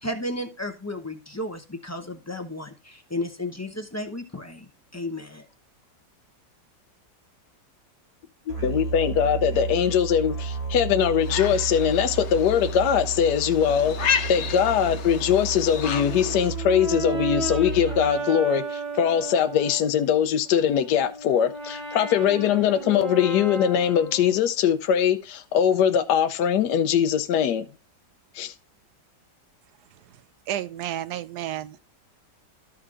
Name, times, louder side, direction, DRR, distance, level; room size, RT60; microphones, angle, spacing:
voice 1, 0.0-5.5, left 1 dB, 20° left, 0.4 m, -33 dB
voice 2, 8.5-27.7 28.4-28.5, left 8 dB, 75° left, 1.2 m, -22 dB
Musical instrument, 8.5-18.3, right 5 dB, 50° right, 2.3 m, -33 dB
sound 1, 11.2-16.5, left 7 dB, 55° left, 0.9 m, -32 dB
Brass instrument, 15.9-19.9 20.5-24.5, right 3 dB, 30° right, 1.8 m, -34 dB
voice 3, 30.5-31.8, right 12 dB, 75° right, 1.1 m, -31 dB
13.5 x 4.5 x 3.7 m
omnidirectional pair, 1.8 m